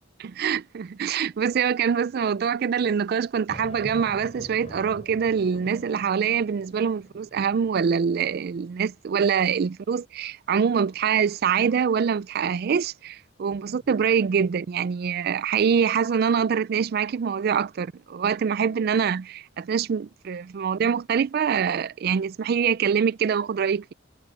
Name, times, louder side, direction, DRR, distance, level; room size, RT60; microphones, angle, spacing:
voice 1, 0.2-23.9, right 7 dB, 50° right, 0.3 m, -24 dB
sound 1, 3.5-9.0 9.5-9.6 13.5-14.6, equal, 35° left, 4.6 m, -46 dB
head